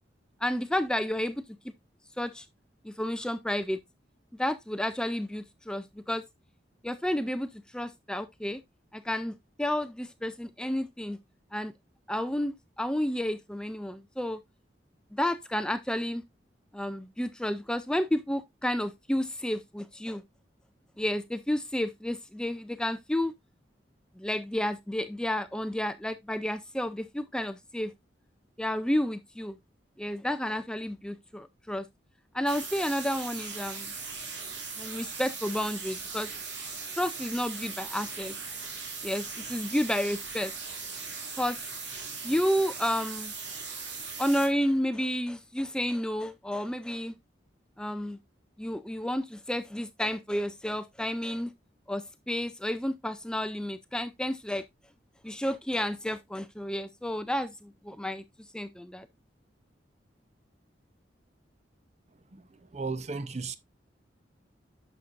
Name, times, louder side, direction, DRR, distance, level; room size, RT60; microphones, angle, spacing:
voice 1, 0.4-1.4 2.2-2.5 2.8-3.8 4.4-6.2 6.8-8.6 8.9-11.2 11.5-11.7 12.1-14.4 15.1-16.2 16.7-20.2 21.0-23.3 24.2-27.9 28.6-29.6 30.0-31.9 32.3-33.9 34.8-36.3 36.9-38.4 39.0-40.5 41.4-41.6 42.2-43.3 44.2-47.1 47.8-48.2 48.6-51.5 51.9-54.6 55.2-58.2 58.5-59.1, left 1 dB, 5° left, 0.4 m, -31 dB
sound 1, 32.5-44.5, right 5 dB, 85° right, 2.5 m, -39 dB
voice 2, 62.3-63.6, right 4 dB, 40° right, 0.7 m, -35 dB
10.5 x 6.5 x 2.5 m
head